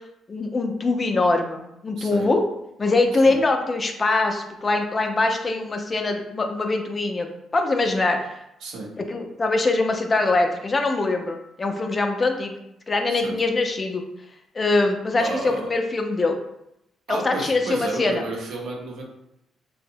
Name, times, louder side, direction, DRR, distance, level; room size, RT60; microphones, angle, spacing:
voice 1, 0.3-2.4 2.8-8.3 9.0-12.5 12.9-14.0 14.5-16.4 17.1-18.2, left 3 dB, 30° left, 5 dB, 0.4 m, -23 dB
voice 2, 2.0-2.3 3.1-3.4 8.6-8.9 13.1-13.4 15.2-15.7 17.1-19.1, right 3 dB, 85° right, -1 dB, 0.6 m, -32 dB
2.7 x 2.0 x 2.6 m, 0.82 s
cardioid pair, 90°, 0 cm